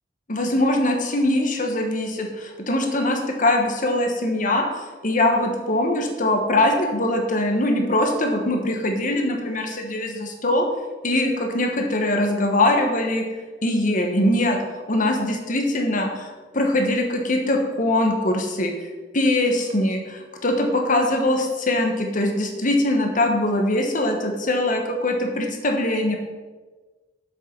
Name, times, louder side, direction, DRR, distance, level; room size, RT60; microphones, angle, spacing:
voice 1, 0.3-4.6 5.0-10.6 11.0-13.2 13.6-14.6 14.9-16.3 16.5-18.7 19.1-26.2, left 1 dB, 45° left, 3 dB, 1.3 m, -22 dB
7.5 x 6.5 x 5.2 m, 1.3 s
head